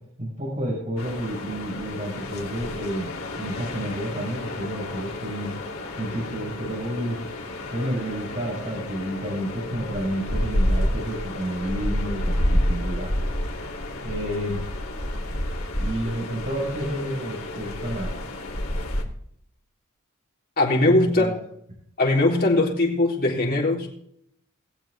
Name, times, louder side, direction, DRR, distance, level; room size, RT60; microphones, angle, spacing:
voice 1, 0.2-5.6 6.0-7.2 7.7-13.1 14.0-14.6 15.8-18.1 21.2-21.3, equal, 35° right, -5 dB, 5.9 m, -30 dB
sound 1, 1.0-19.0, left 1 dB, 70° left, 3.0 m, -29 dB
voice 2, 20.6-21.3 22.0-23.9, left 2 dB, 45° left, -2 dB, 3.8 m, -20 dB
22.0 x 7.8 x 3.5 m, 0.71 s
head